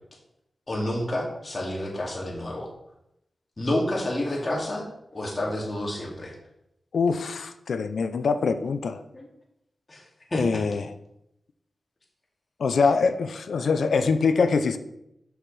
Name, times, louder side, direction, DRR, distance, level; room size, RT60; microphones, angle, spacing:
voice 1, 0.7-2.7 3.6-4.9 5.1-6.3 9.1-9.3 9.9-10.0 10.3-10.6, left 1 dB, 35° left, -3 dB, 2.3 m, -29 dB
voice 2, 6.9-9.0 10.3-10.9 12.6-14.8, left 4 dB, 80° left, 10 dB, 0.5 m, -24 dB
6.3 x 6.1 x 3.3 m, 0.82 s
cardioid pair, 55°, 0 cm